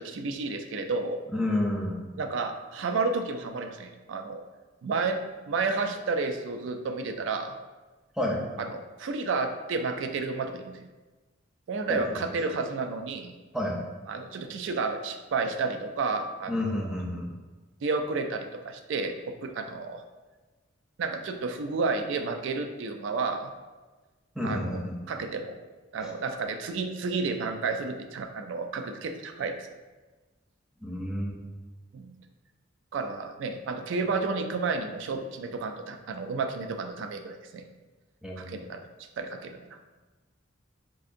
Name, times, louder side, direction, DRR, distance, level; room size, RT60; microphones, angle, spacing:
voice 1, 0.0-1.2 2.2-4.4 4.8-7.6 8.6-10.8 11.7-13.3 14.1-16.9 17.8-20.0 21.0-23.5 24.4-24.8 25.1-25.6 25.9-29.7 31.9-32.1 32.9-37.7 38.4-38.8 39.2-39.7, right 4 dB, 80° right, 6 dB, 0.3 m, -31 dB
voice 2, 1.3-2.0 8.2-8.4 11.9-12.0 13.5-13.8 16.5-17.3 24.4-24.9 30.8-31.3 38.2-38.6, left 1 dB, 5° right, -3 dB, 0.5 m, -30 dB
4.6 x 2.5 x 2.5 m, 1.2 s
head